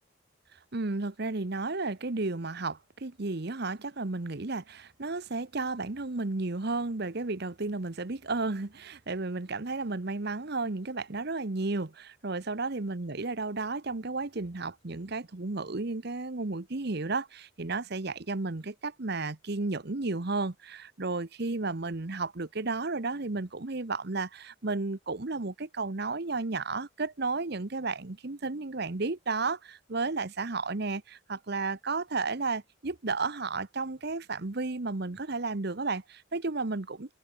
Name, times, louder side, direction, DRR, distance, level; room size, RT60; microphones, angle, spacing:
voice 1, 0.7-37.1, right 3 dB, 50° right, 1.0 m, -33 dB
head